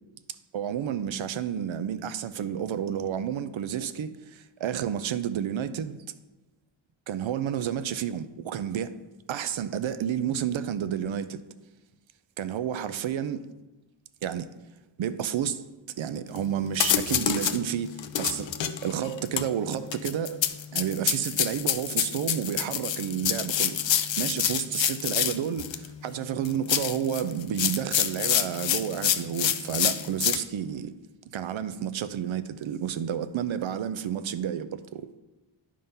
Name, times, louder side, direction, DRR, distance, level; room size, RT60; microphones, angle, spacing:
voice 1, 0.5-5.9 7.1-8.9 9.3-11.4 12.4-13.4 14.2-14.5 15.0-15.6 16.0-18.5 18.8-20.4 20.7-30.9 31.3-35.1, right 9 dB, 80° right, 0.6 m, -30 dB
sound 1, 16.4-16.5 16.7-17.6 18.0-25.9 26.4-30.4, left 10 dB, 70° left, 0.6 m, -27 dB
10.5 x 3.8 x 5.4 m
wide cardioid pair, 150°, 47 cm